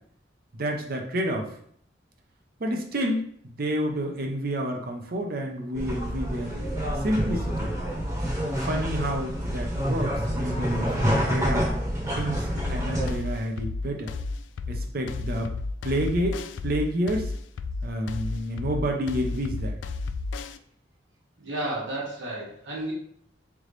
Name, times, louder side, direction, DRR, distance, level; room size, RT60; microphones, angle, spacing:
voice 1, 0.5-1.5 2.6-6.5 7.0-7.7 8.6-11.7 12.1-14.1 14.7-15.5 15.8-17.3 17.8-19.8, equal, 55° right, 2 dB, 0.7 m, -29 dB
sound 1, 5.7-13.1, equal, 20° right, 1.1 m, -28 dB
sound 2, 12.6-20.6, left 3 dB, 80° left, 0.3 m, -32 dB
voice 2, 21.4-22.9, right 1 dB, 90° right, -6 dB, 1.4 m, -32 dB
3.8 x 3.5 x 3.2 m, 0.63 s
head